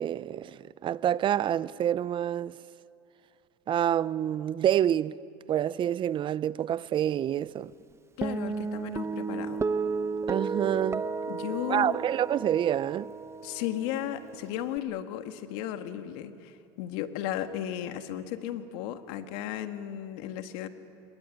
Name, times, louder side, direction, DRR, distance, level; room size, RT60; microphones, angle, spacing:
voice 1, 0.0-2.6 3.7-5.2 5.5-7.7 10.3-11.0 11.7-13.1, right 10 dB, 35° right, 0.6 m, -27 dB
voice 2, 8.2-9.6 11.3-12.0 13.4-20.7, left 11 dB, 70° left, 1.6 m, -35 dB
Guitar, 8.2-14.8, right 4 dB, 20° right, 1.0 m, -33 dB
22.5 x 21.0 x 9.9 m
supercardioid pair, 105°, 14 cm